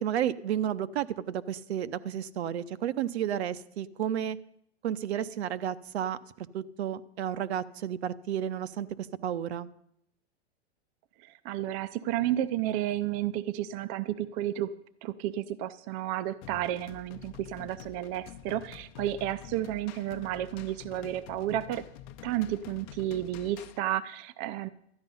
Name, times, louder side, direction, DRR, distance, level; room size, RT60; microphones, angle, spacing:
voice 1, 0.0-4.4 4.8-9.7, right 10 dB, 70° right, 15 dB, 0.8 m, -32 dB
voice 2, 11.2-21.8 22.2-24.7, right 13 dB, 30° right, 15 dB, 0.5 m, -32 dB
sound 1, 16.4-23.8, left 10 dB, 45° left, 0.8 m, -48 dB
12.5 x 9.7 x 5.4 m, 0.73 s
hypercardioid pair, 130°, 33 cm